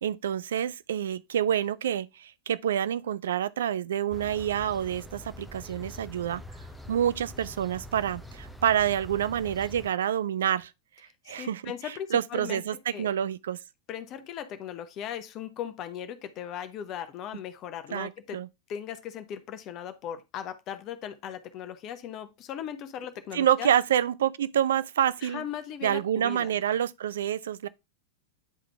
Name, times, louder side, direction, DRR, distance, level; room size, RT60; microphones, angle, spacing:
voice 1, 0.0-6.4 6.9-10.7 11.3-11.7 12.1-13.6 17.9-18.5 23.3-25.4 25.8-27.7, right 10 dB, 60° right, 0.4 m, -27 dB
sound 1, 4.1-9.9, left 1 dB, ahead, 0.8 m, -45 dB
voice 2, 11.3-12.6 12.9-13.1 13.9-18.4 18.7-23.7 25.2-26.5, left 9 dB, 35° left, 0.9 m, -38 dB
9.4 x 3.7 x 3.4 m
figure-of-eight pair, 90°, 0 cm